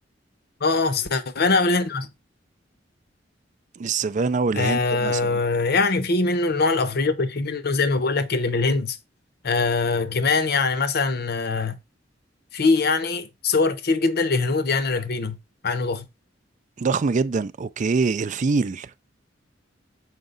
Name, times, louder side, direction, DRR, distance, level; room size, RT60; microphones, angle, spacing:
voice 1, 0.6-2.1 4.6-9.0 9.4-11.8 12.5-15.4 15.6-16.1, left 3 dB, 60° left, 0.8 m, -22 dB
voice 2, 3.8-5.4 16.8-18.9, right 4 dB, 40° right, 0.4 m, -24 dB
6.6 x 4.8 x 3.8 m
head